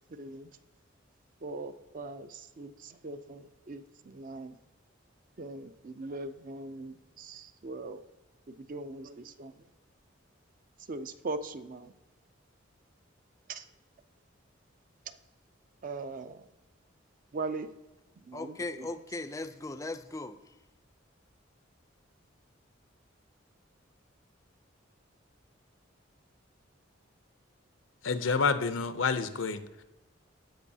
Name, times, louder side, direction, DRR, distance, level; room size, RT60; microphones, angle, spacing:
voice 1, 0.1-0.5 1.4-4.6 5.4-8.0 8.5-9.7 10.9-11.9 13.5-13.7 15.1-15.2 15.8-16.5 17.3-17.7 18.3-18.9, right 3 dB, 45° right, 0.5 m, -40 dB
voice 2, 18.3-20.4, left 2 dB, 15° left, 0.4 m, -38 dB
voice 3, 28.0-29.8, left 5 dB, 80° left, 0.6 m, -29 dB
15.5 x 5.3 x 2.8 m
head